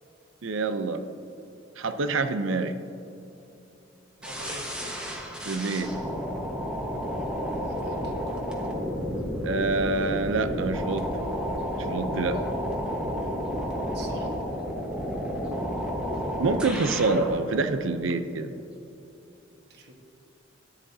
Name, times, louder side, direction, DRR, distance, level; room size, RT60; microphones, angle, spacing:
voice 1, 0.4-1.0 1.8-2.7 5.5-5.9 9.4-11.1 11.7-12.4 16.4-18.5, right 3 dB, 75° right, 10 dB, 0.6 m, -26 dB
sound 1, 4.2-17.4, equal, 5° right, 1.3 m, -31 dB
voice 2, 4.2-5.1 7.5-8.1 13.9-14.4 19.7-19.9, right 2 dB, 55° right, 2 dB, 1.4 m, -44 dB
14.0 x 10.0 x 2.8 m, 2.9 s
head